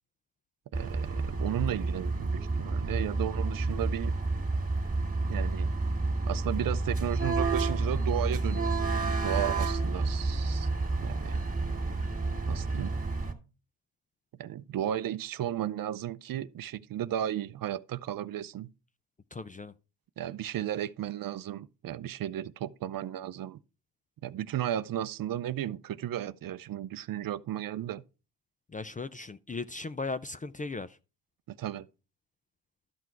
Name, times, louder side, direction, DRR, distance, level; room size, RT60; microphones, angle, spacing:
sound 1, 0.7-13.3, right 3 dB, 15° right, 2.2 m, -30 dB
voice 1, 0.7-4.1 5.3-5.7 6.3-10.7 11.0-11.4 12.5-12.9 14.4-18.7 20.2-23.6 24.2-28.0 31.5-31.9, right 11 dB, 50° right, 0.6 m, -34 dB
voice 2, 19.3-19.7 28.7-31.0, left 3 dB, 20° left, 0.4 m, -37 dB
12.5 x 6.0 x 4.5 m
cardioid pair, 100°, 45 cm